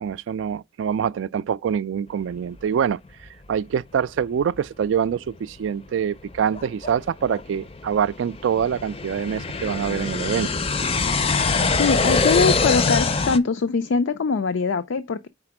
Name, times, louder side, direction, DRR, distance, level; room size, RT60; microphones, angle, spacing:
voice 1, 0.0-3.0 3.5-10.6, right 7 dB, 85° right, 0.3 m, -25 dB
sound 1, 4.6-4.7 5.3-5.4 6.0-13.4, left 4 dB, 30° left, 0.5 m, -24 dB
voice 2, 11.8-15.3, left 4 dB, 85° left, 0.4 m, -22 dB
4.8 x 4.3 x 5.9 m
head